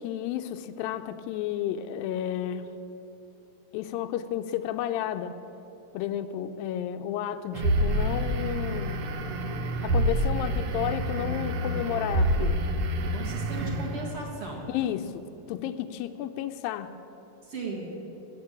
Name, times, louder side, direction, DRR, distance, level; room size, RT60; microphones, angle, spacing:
voice 1, 0.0-2.7 3.7-5.4 5.9-9.0 9.8-12.6 14.7-15.2 15.5-16.9, left 11 dB, 85° left, 9 dB, 2.3 m, -32 dB
sound 1, 7.5-14.3, right 1 dB, 80° right, 1.3 m, -27 dB
voice 2, 13.1-14.7 17.4-17.9, right 2 dB, 45° right, -1 dB, 2.2 m, -37 dB
16.0 x 7.6 x 8.8 m, 3.0 s
omnidirectional pair, 4.1 m